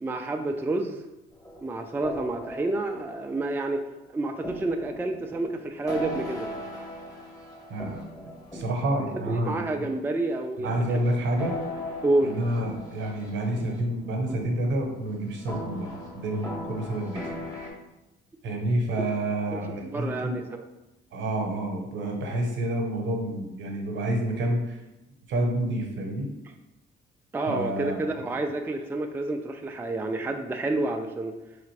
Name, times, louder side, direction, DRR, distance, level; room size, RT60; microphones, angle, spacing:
voice 1, 0.0-1.0 1.6-3.8 4.1-6.5 9.1-10.8 12.0-12.4 19.5-20.6 27.3-31.3, right 2 dB, 10° right, 4 dB, 0.3 m, -29 dB
sound 1, 1.3-3.8 4.4-9.9 10.7-17.7, left 1 dB, 15° left, 1.3 m, -39 dB
voice 2, 8.5-9.9 10.6-11.6 12.2-17.2 18.4-20.4 21.1-24.8 25.3-26.3 27.5-28.1, right 1 dB, 70° right, 2 dB, 0.9 m, -28 dB
3.8 x 3.3 x 3.2 m, 0.97 s
cardioid pair, 90°, 20 cm